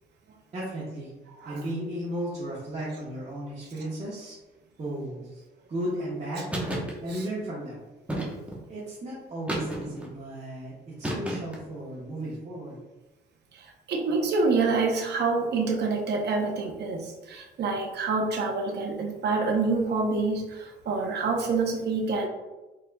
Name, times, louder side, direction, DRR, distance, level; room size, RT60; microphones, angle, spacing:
voice 1, 0.5-1.1 1.4-4.4 4.8-5.4 5.7-6.6 7.0-7.8 8.7-12.8, right 1 dB, 35° right, -8 dB, 1.2 m, -35 dB
sound 1, 6.5-6.9 8.1-8.6 9.5-10.1 11.0-11.7, right 1 dB, 5° right, 0.9 m, -31 dB
voice 2, 13.6-22.3, right 4 dB, 55° right, 1 dB, 0.8 m, -27 dB
4.2 x 3.7 x 2.2 m, 1.1 s
cardioid pair, 90°, 20 cm